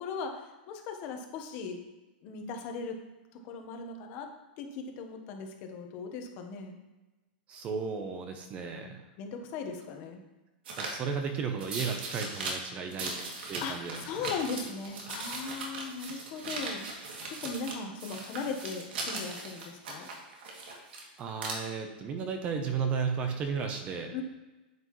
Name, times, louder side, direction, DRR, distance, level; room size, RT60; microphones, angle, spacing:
voice 1, 0.0-1.8 2.2-3.0 3.4-4.3 4.6-6.8 8.8-10.2 13.0-13.3 13.6-13.8 14.0-16.8 17.3-20.1 24.1-24.2, left 5 dB, 35° left, 4 dB, 1.2 m, -38 dB
voice 2, 7.5-9.0 10.8-13.1 13.5-14.2 21.2-24.1, right 6 dB, 25° right, 5 dB, 0.8 m, -34 dB
sound 1, 10.6-10.9 11.6-12.5 12.9-17.7 18.0-21.0 21.3-21.5, right 3 dB, 80° right, 2.6 m, -39 dB
9.3 x 8.0 x 3.2 m, 1.1 s
supercardioid pair, 160°, 5 cm